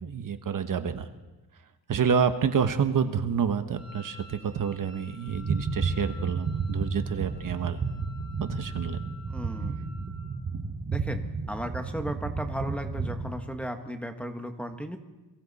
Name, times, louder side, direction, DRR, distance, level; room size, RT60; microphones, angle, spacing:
voice 1, 0.0-1.1 1.9-7.8 8.4-9.0, right 7 dB, 55° right, 9 dB, 1.2 m, -28 dB
Wind instrument woodwind instrument, 3.7-10.3, left 3 dB, 15° right, 6.0 m, -51 dB
sound 1, 5.3-13.4, right 4 dB, 35° right, 1.7 m, -32 dB
voice 2, 9.3-9.8 10.9-15.0, equal, 5° left, 4 dB, 1.4 m, -35 dB
28.5 x 22.5 x 4.2 m, 1.1 s
wide cardioid pair, 140°, 38 cm